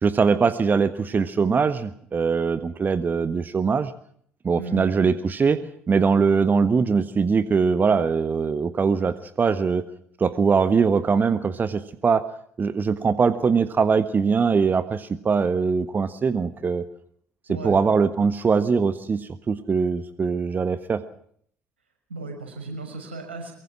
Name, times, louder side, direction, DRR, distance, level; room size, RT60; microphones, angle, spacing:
voice 1, 0.0-3.9 4.4-5.6 5.9-9.8 10.2-12.2 12.6-16.8 17.6-21.0, right 5 dB, 30° right, 12 dB, 1.4 m, -22 dB
voice 2, 17.5-17.8 22.1-23.5, right 3 dB, 85° right, 3 dB, 6.3 m, -35 dB
23.5 x 23.5 x 6.1 m, 0.64 s
figure-of-eight pair, 55°, 6 cm